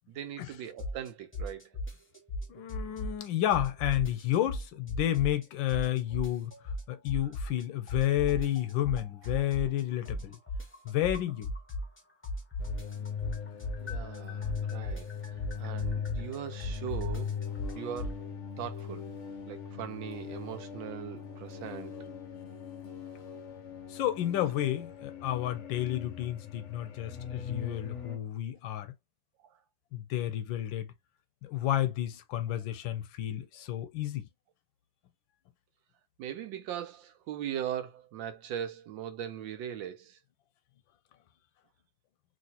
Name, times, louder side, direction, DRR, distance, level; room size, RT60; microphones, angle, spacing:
voice 1, 0.1-1.7 2.9-3.0 13.8-15.1 15.6-17.3 17.7-18.2 18.6-19.1 19.5-22.0 29.5-29.6 33.6-33.7 36.2-40.2, right 10 dB, 80° right, 1.4 m, -39 dB
sound 1, 0.8-1.1 1.3-3.3 3.5-5.4 5.7-7.6 7.9-12.0 12.2-18.1, left 1 dB, 15° left, 0.4 m, -36 dB
voice 2, 2.5-10.4 10.8-11.5 23.9-28.9 29.9-30.9 31.4-34.3, left 13 dB, 90° left, 1.4 m, -31 dB
sound 2, 12.6-28.2, left 7 dB, 65° left, 0.7 m, -40 dB
3.0 x 3.0 x 2.8 m
omnidirectional pair, 2.1 m